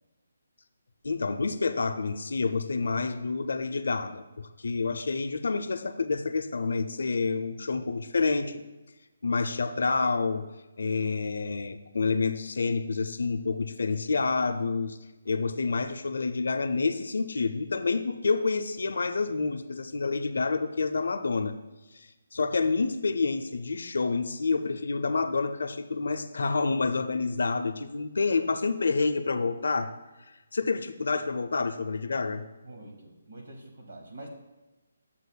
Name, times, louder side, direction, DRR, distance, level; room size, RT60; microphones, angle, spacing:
voice 1, 1.0-8.6 9.2-10.5 10.8-15.0 15.3-21.6 21.9-29.9 30.5-32.4, left 4 dB, 70° left, 9 dB, 0.5 m, -28 dB
voice 2, 32.6-34.3, right 2 dB, 55° right, 2 dB, 1.6 m, -45 dB
9.8 x 7.3 x 2.2 m, 1.1 s
hypercardioid pair, 175°, 0 cm